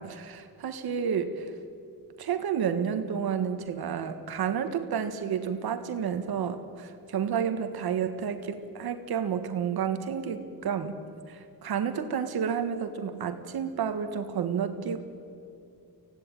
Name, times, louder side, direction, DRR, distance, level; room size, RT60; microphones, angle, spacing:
voice 1, 0.0-1.5 2.2-11.0 11.3-15.0, right 7 dB, 80° right, 8 dB, 1.7 m, -30 dB
25.5 x 16.5 x 9.1 m, 2.6 s
wide cardioid pair, 160°, 37 cm